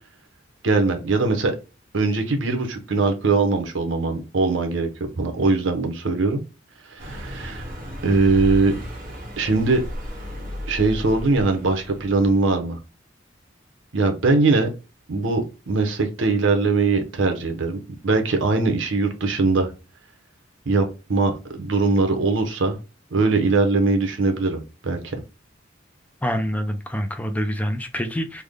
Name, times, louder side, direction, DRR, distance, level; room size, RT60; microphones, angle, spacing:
voice 1, 0.6-1.6 1.9-4.9 5.2-6.4 6.9-7.7 8.0-8.7 9.4-9.8 10.7-12.8 13.9-14.7 15.1-17.8 18.0-19.7 20.7-22.8 23.1-25.2, right 3 dB, 75° right, 0.8 m, -21 dB
Car passing by, 7.0-12.5, equal, 50° right, 1.2 m, -34 dB
voice 2, 26.2-28.4, equal, 10° left, 0.3 m, -26 dB
3.4 x 2.1 x 3.5 m
head